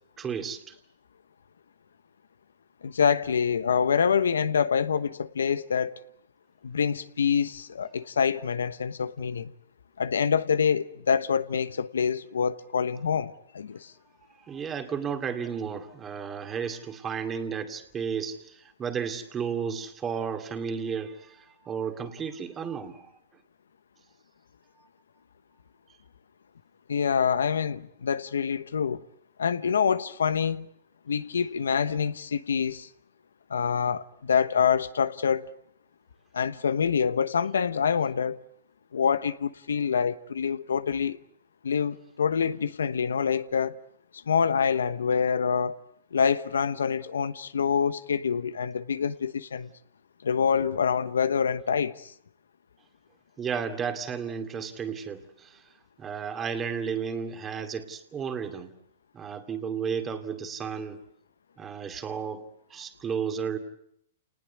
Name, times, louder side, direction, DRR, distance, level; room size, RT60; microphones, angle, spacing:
voice 1, 0.2-0.8 14.4-23.1 53.4-55.6 56.0-58.7 59.1-61.0 61.6-62.4 62.7-63.6, right 6 dB, 20° right, 2.5 m, -33 dB
voice 2, 2.8-6.0 6.6-9.5 10.0-13.9 26.9-29.0 29.4-30.7 31.1-32.9 33.5-35.5 36.3-38.4 38.9-41.2 41.6-43.8 44.3-45.8 46.1-49.7 50.2-52.1, left 6 dB, 90° left, 1.0 m, -26 dB
28.5 x 19.5 x 8.3 m
hypercardioid pair, 130°, 0 cm